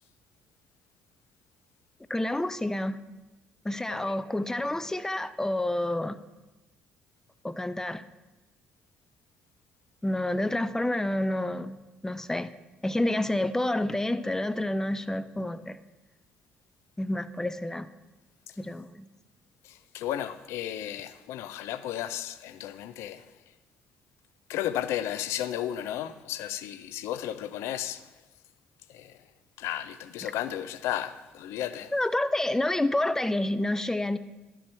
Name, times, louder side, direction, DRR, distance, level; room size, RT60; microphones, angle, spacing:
voice 1, 2.1-3.0 3.6-6.2 7.4-8.0 10.0-12.5 12.8-15.8 17.0-17.9 18.6-19.1 31.9-34.2, left 1 dB, 10° left, 0.4 m, -29 dB
voice 2, 19.6-23.2 24.5-28.1 28.9-29.2 29.6-31.9, left 11 dB, 70° left, 0.4 m, -34 dB
11.5 x 4.4 x 4.6 m
hypercardioid pair, 55°, 5 cm